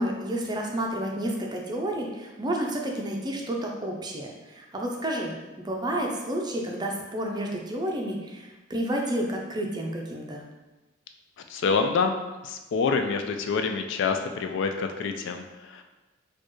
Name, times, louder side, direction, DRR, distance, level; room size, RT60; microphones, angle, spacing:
voice 1, 0.0-5.3 5.6-10.4, right 1 dB, 20° right, 0 dB, 0.5 m, -30 dB
voice 2, 11.5-12.1 12.4-15.8, left 5 dB, 65° left, 6 dB, 0.3 m, -27 dB
4.3 x 2.3 x 3.1 m, 1.1 s
head